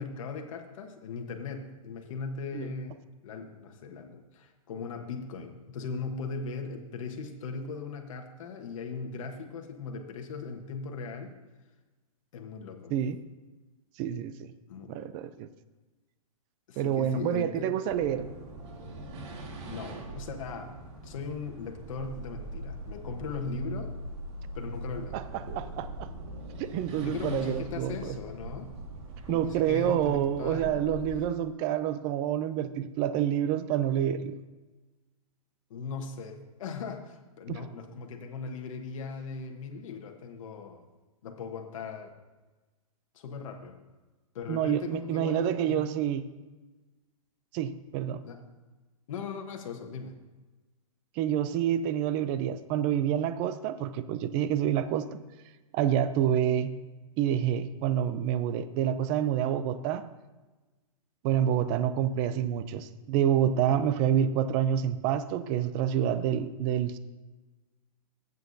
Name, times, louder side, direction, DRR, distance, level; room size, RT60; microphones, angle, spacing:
voice 1, 0.0-11.3 12.3-12.9 14.7-14.9 16.7-17.9 19.7-20.7 21.0-23.9 24.5-25.2 27.0-28.7 29.3-30.7 35.7-40.8 41.2-42.1 43.1-43.8 44.3-45.9 48.2-48.4 49.1-50.1, left 5 dB, 60° left, 4 dB, 1.3 m, -38 dB
voice 2, 14.0-14.5 14.9-15.5 16.8-18.3 25.1-26.1 26.6-28.0 29.3-34.4 37.5-37.6 44.5-46.2 47.5-48.2 51.2-55.2 55.7-56.8 57.2-60.1 61.2-67.0, right 10 dB, 25° right, 13 dB, 0.4 m, -28 dB
sound 1, 17.9-31.1, right 1 dB, 50° right, 1.7 m, -41 dB
15.0 x 8.1 x 2.7 m, 1.2 s
hypercardioid pair, 150°, 19 cm